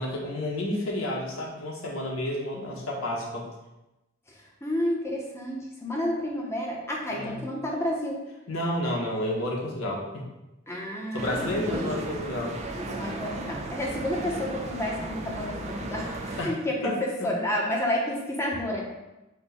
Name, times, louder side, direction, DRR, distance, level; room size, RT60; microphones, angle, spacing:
voice 1, 0.0-3.5 7.1-7.4 8.5-10.2 11.1-12.5 16.4-17.3, left 1 dB, 85° left, -2 dB, 1.0 m, -31 dB
voice 2, 4.3-8.2 10.7-12.0 12.8-18.8, left 1 dB, 15° left, -2 dB, 0.7 m, -30 dB
sound 1, 11.2-16.4, right 2 dB, 30° right, 0.4 m, -35 dB
4.4 x 2.1 x 4.1 m, 0.99 s
head